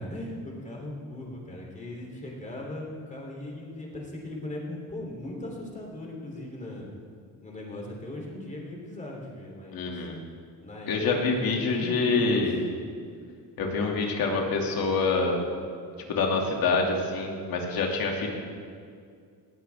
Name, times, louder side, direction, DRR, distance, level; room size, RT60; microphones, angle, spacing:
voice 1, 0.0-6.9 7.4-10.0 10.6-12.4, left 1 dB, 20° left, -1 dB, 3.3 m, -38 dB
voice 2, 9.7-10.2 10.9-12.7 13.6-15.5 16.1-18.3, left 3 dB, 65° left, 1 dB, 2.6 m, -26 dB
19.5 x 14.0 x 3.6 m, 2.2 s
cardioid pair, 135°, 38 cm